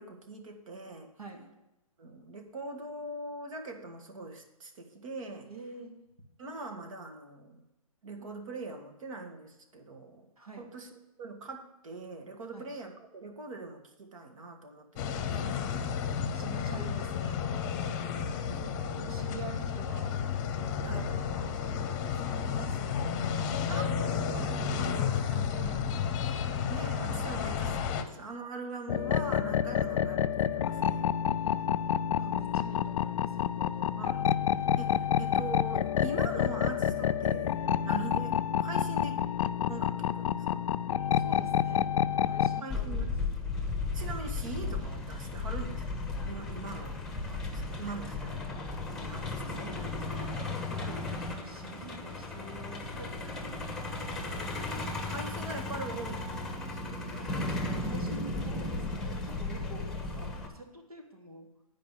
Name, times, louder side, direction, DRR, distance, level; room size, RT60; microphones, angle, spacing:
voice 1, 0.0-1.1 2.0-5.5 6.4-7.6 8.0-10.3 10.6-15.7 18.0-19.1 20.8-21.1 23.7-23.8 24.1-24.2 25.3-26.0 26.7-31.1 34.0-34.3 34.8-39.2 39.7-40.7 42.6-43.4 43.9-46.0 46.3-48.6 49.1-49.7 54.8-57.9, right 2 dB, 65° right, 5 dB, 1.8 m, -42 dB
voice 2, 5.5-6.0 10.4-10.7 12.5-12.7 16.3-17.4 18.5-20.2 20.8-26.0 27.3-28.0 29.7-29.8 31.2-33.9 41.2-41.9 42.2-43.1 50.5-53.6 57.2-61.5, right 3 dB, 90° right, 0 dB, 2.5 m, -48 dB
sound 1, 15.0-28.0, left 7 dB, 35° left, 0.8 m, -32 dB
sound 2, 28.9-42.6, left 9 dB, 60° left, 0.4 m, -28 dB
Truck, 42.7-60.5, left 3 dB, 5° left, 1.1 m, -35 dB
9.3 x 5.0 x 7.5 m, 0.97 s
hypercardioid pair, 135°, 19 cm